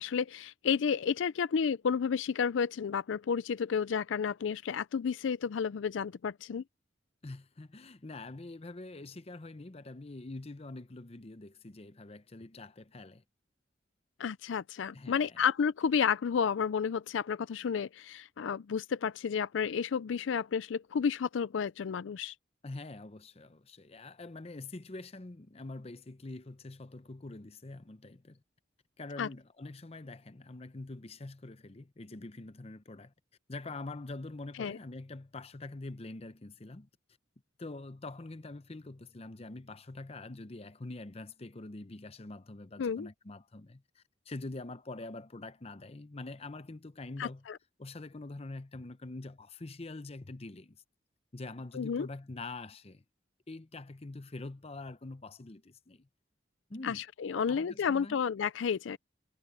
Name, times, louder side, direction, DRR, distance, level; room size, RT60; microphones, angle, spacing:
voice 1, 0.0-6.6 14.2-22.3 29.2-29.3 34.6-34.8 42.8-43.1 47.2-47.6 51.7-52.1 56.8-59.0, left 6 dB, 80° left, 0.4 m, -31 dB
voice 2, 7.2-13.2 14.9-15.4 22.6-28.4 29.0-33.1 33.5-36.9 37.6-47.5 47.8-50.8 51.3-53.0 53.5-56.1 56.7-57.0 57.3-58.2, left 2 dB, 35° left, 0.7 m, -45 dB
head